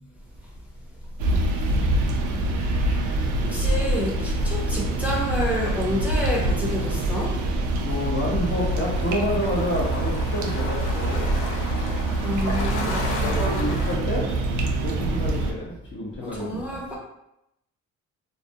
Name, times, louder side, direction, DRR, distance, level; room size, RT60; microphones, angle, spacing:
sound 1, 1.2-15.5, right 2 dB, 80° right, 0.5 m, -25 dB
voice 1, 3.4-7.4 12.2-13.4 16.2-17.0, left 1 dB, 5° right, -5 dB, 0.6 m, -29 dB
voice 2, 7.8-11.4 12.4-14.3 14.8-16.8, left 1 dB, 40° left, -3 dB, 0.7 m, -29 dB
sound 2, 8.4-14.0, left 2 dB, 80° left, 0.6 m, -35 dB
2.3 x 2.1 x 2.6 m, 0.83 s
cardioid pair, 90°, 30 cm